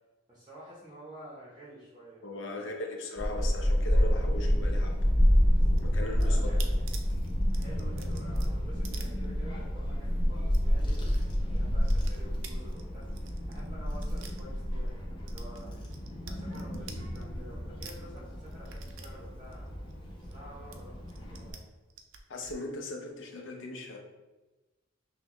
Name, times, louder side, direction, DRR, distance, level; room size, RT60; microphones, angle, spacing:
voice 1, 0.3-2.7 6.2-6.9 7.5-15.7 16.2-19.7 20.2-21.7, right 1 dB, 20° right, -6 dB, 0.7 m, -50 dB
voice 2, 2.2-5.0 5.8-6.4 22.3-24.0, left 2 dB, 65° left, 1 dB, 0.7 m, -38 dB
Child speech kid speaking / Wind, 3.2-21.5, equal, 25° left, 0.7 m, -29 dB
sound 1, 5.6-9.8 10.1-10.2 10.4-11.2 11.4-14.9 15.3-17.5 17.8-20.4 20.7-21.6 21.9-22.5, right 4 dB, 75° right, 0.5 m, -48 dB
5.9 x 2.2 x 2.9 m, 1.1 s
head